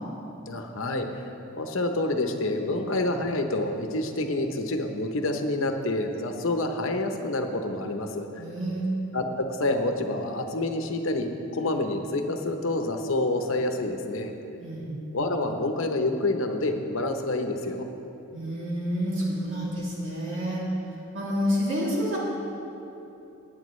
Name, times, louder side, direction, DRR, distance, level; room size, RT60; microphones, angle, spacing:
voice 1, 0.5-1.2 1.5-8.4 9.1-14.3 15.1-17.9, left 2 dB, 75° left, 5 dB, 0.9 m, -28 dB
voice 2, 8.4-8.8 14.6-14.9 18.3-20.6 21.1-22.2, equal, 65° right, -6 dB, 3.0 m, -29 dB
18.5 x 8.6 x 3.2 m, 2.9 s
head